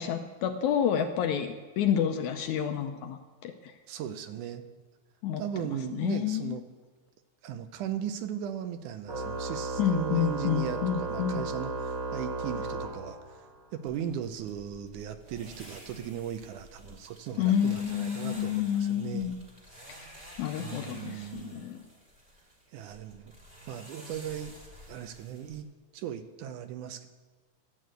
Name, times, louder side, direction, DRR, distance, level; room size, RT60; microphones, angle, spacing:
voice 1, 0.0-3.5 5.2-5.4 5.9-6.6 9.8-11.4 17.4-19.4 20.4-21.8, left 9 dB, 80° left, 6 dB, 1.8 m, -29 dB
voice 2, 3.9-4.6 5.4-6.6 7.4-13.4 13.7-19.4 19.9-20.1 20.5-21.7 22.7-23.3 23.7-24.5 24.9-25.7 25.9-27.1, right 9 dB, 75° right, 9 dB, 2.0 m, -37 dB
Organ, 9.1-13.6, right 3 dB, 45° right, 1.6 m, -35 dB
sound 1, 13.9-25.6, equal, 20° right, 1.7 m, -51 dB
12.5 x 8.4 x 7.7 m, 1.4 s
omnidirectional pair, 3.8 m